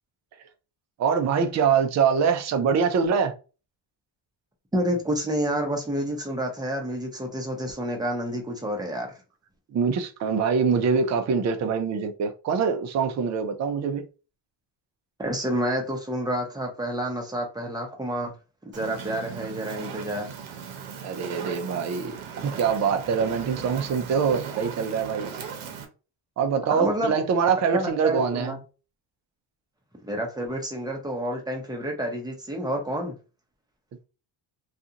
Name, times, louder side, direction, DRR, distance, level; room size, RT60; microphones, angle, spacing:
voice 1, 1.0-3.3 9.7-14.1 21.0-25.3 26.4-28.6, right 6 dB, 40° right, 0.4 m, -24 dB
voice 2, 4.7-9.1 15.2-18.3 18.7-20.3 26.8-27.2 27.7-28.6 30.0-33.2, right 1 dB, 10° right, 0.8 m, -29 dB
Fire, 18.7-25.8, right 7 dB, 85° right, 0.8 m, -38 dB
2.4 x 2.4 x 2.8 m
cardioid pair, 120°, 46 cm